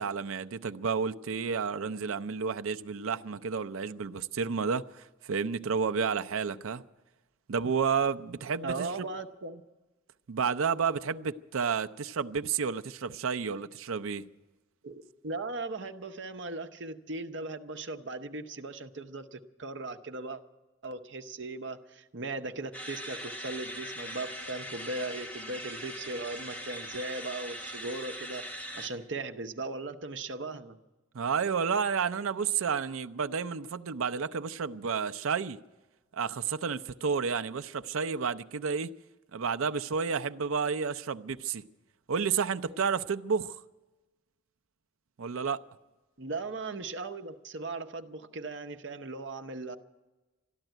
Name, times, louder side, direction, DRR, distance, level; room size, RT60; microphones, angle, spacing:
voice 1, 0.0-6.8 7.5-8.9 10.3-14.3 31.1-35.6 36.1-38.9 39.3-41.6 42.1-43.6 45.2-45.6, right 6 dB, 90° right, 0.5 m, -31 dB
voice 2, 8.6-9.6 14.8-20.4 20.8-30.8 46.2-49.8, right 3 dB, 60° right, 0.9 m, -38 dB
sound 1, 22.7-28.9, equal, 5° left, 1.8 m, -41 dB
13.5 x 12.0 x 9.0 m
head